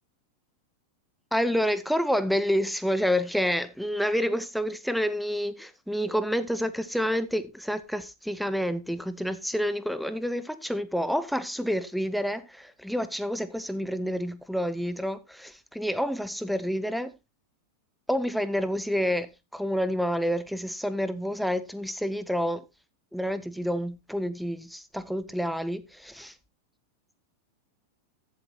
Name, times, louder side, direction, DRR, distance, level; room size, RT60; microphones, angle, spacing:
voice 1, 1.3-17.1 18.1-22.6 23.1-26.3, equal, ahead, 0.9 m, -28 dB
14.0 x 8.0 x 2.9 m
figure-of-eight pair, 90°, 0 cm